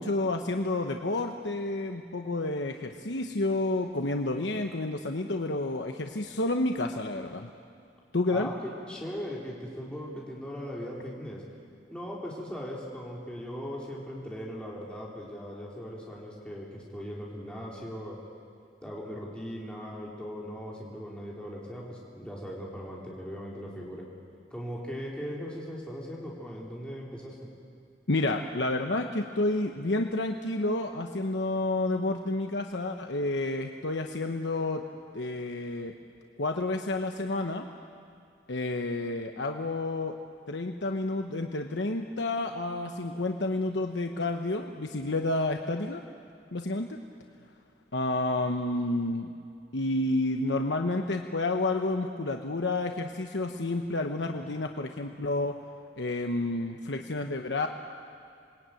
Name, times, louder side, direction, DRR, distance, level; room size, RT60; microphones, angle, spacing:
voice 1, 0.0-7.5 8.1-8.5 28.1-34.8 35.1-35.9 36.4-37.6 38.5-40.2 40.5-46.0 46.5-47.0 47.9-49.3 49.7-55.6 56.0-57.7, left 2 dB, 90° left, 4 dB, 1.1 m, -30 dB
voice 2, 8.3-11.4 11.9-18.2 18.8-24.1 24.5-27.4, equal, 5° left, -4 dB, 3.6 m, -39 dB
27.0 x 21.0 x 9.3 m, 2.4 s
head